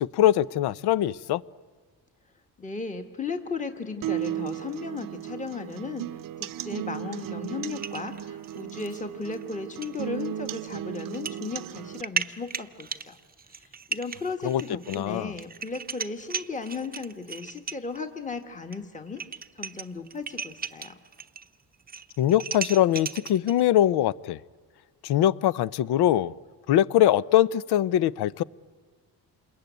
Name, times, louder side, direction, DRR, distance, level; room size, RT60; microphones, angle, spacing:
voice 1, 0.0-1.4 14.4-14.6 14.9-15.3 22.2-24.4 25.0-26.3 26.7-28.4, left 12 dB, 75° left, 19 dB, 0.7 m, -22 dB
voice 2, 2.6-6.1 6.4-13.2 13.5-20.9, left 4 dB, 20° left, 6 dB, 1.6 m, -36 dB
sound 1, 4.0-12.0, right 12 dB, 55° right, 0.7 m, -35 dB
sound 2, 7.7-9.0 9.3-9.4 9.8-10.0 11.0-11.4 11.8-18.0 18.7-18.8 19.1-21.5 21.7-23.6, right 5 dB, 25° right, 0.7 m, -36 dB
27.0 x 21.5 x 9.4 m, 1.5 s
cardioid pair, 100°, 39 cm